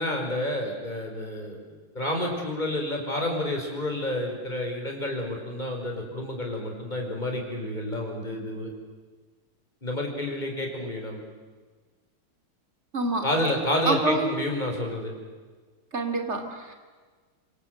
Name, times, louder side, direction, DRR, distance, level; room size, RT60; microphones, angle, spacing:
voice 1, 0.0-1.6 1.9-8.7 9.8-11.2 13.2-15.1, left 1 dB, 20° left, 1 dB, 5.0 m, -29 dB
voice 2, 12.9-13.2 13.9-14.3 15.9-16.8, right 2 dB, 30° right, 5 dB, 3.2 m, -26 dB
26.5 x 25.0 x 7.8 m, 1.4 s
omnidirectional pair, 2.3 m